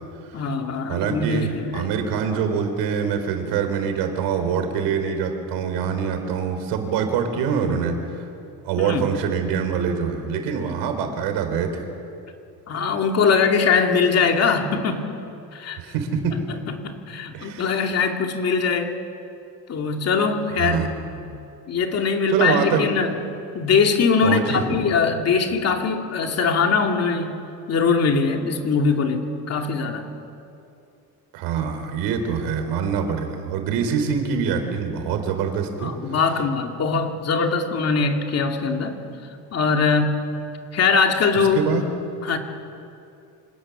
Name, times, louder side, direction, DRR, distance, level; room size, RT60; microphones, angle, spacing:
voice 1, 0.3-1.9 8.8-9.1 12.7-15.1 15.5-15.8 16.3-18.9 19.7-20.8 21.7-23.1 23.5-27.4 27.7-30.1 35.8-39.0 39.5-40.2 40.7-41.7 42.2-42.4, left 5 dB, 40° left, 3 dB, 2.6 m, -22 dB
voice 2, 0.9-8.3 8.6-11.9 15.8-16.3 17.3-17.7 20.6-21.4 22.3-22.8 24.2-24.9 31.3-35.9 41.5-41.9, right 6 dB, 85° right, 6 dB, 4.0 m, -24 dB
27.0 x 26.0 x 7.2 m, 2.6 s
cardioid pair, 155°, 39 cm